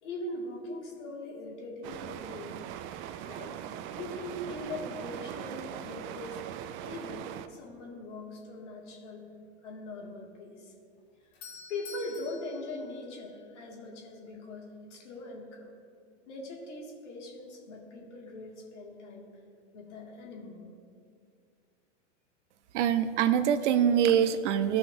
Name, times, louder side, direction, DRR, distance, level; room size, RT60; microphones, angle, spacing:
voice 1, 0.0-2.6 3.3-3.6 4.0-6.4 6.8-9.3 9.6-10.7 11.7-15.7 16.3-19.3 19.7-20.6, left 2 dB, 80° left, -2 dB, 2.3 m, -41 dB
sound 1, 1.8-7.5, right 10 dB, 35° right, 0.4 m, -40 dB
Doorbell, 11.0-13.8, left 5 dB, 60° left, 1.9 m, -49 dB
voice 2, 22.7-24.8, right 9 dB, 75° right, 11 dB, 0.7 m, -24 dB
16.0 x 5.7 x 2.7 m, 2.2 s
hypercardioid pair, 115°, 36 cm